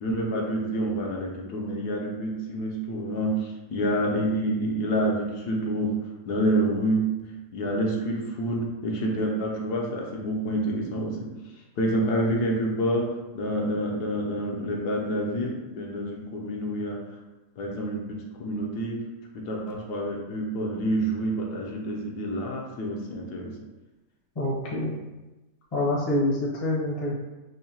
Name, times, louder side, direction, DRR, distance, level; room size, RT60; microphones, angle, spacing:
voice 1, 0.0-6.0 6.2-17.0 17.6-19.0 19.3-23.6, right 1 dB, 75° left, -1 dB, 1.2 m, -28 dB
voice 2, 24.4-24.9 25.7-27.1, left 1 dB, 30° left, -4 dB, 0.6 m, -26 dB
5.6 x 2.1 x 2.8 m, 1.1 s
omnidirectional pair, 1.8 m